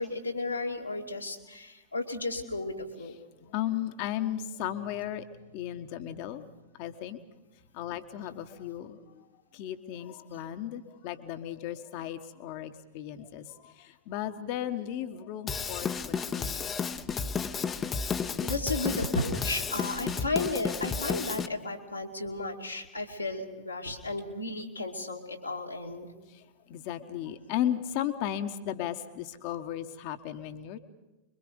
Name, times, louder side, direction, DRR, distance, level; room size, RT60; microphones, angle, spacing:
voice 1, 0.0-3.2 18.4-26.1, left 2 dB, 85° left, -1 dB, 2.4 m, -34 dB
voice 2, 3.4-5.2 5.5-6.4 6.8-7.2 7.7-9.0 9.5-16.6 26.7-30.8, left 11 dB, 45° left, 9 dB, 1.2 m, -35 dB
Drum kit / Drum, 15.5-21.5, left 6 dB, 20° left, 0.8 m, -32 dB
25.5 x 23.0 x 5.3 m, 1.0 s
figure-of-eight pair, 90°, 0 cm